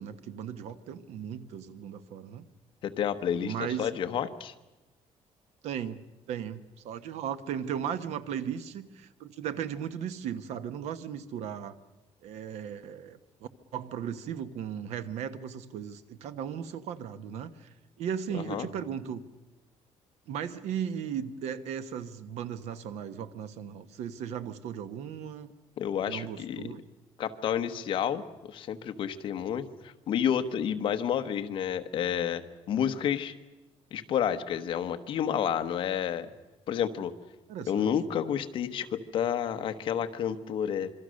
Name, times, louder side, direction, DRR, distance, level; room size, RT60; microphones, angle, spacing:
voice 1, 0.0-2.4 3.4-3.9 5.6-6.0 6.3-11.7 12.2-13.2 13.7-17.7 18.0-19.2 20.3-25.5 26.1-26.8 32.7-32.9 37.5-37.9, right 8 dB, 80° right, 12 dB, 1.3 m, -36 dB
voice 2, 2.8-4.5 18.3-18.7 25.8-26.7 27.2-28.2 28.5-33.3 33.9-36.3 36.7-37.1 37.7-40.9, left 9 dB, 50° left, 7 dB, 1.2 m, -30 dB
27.0 x 23.0 x 6.5 m, 1.0 s
cardioid pair, 180°, 11 cm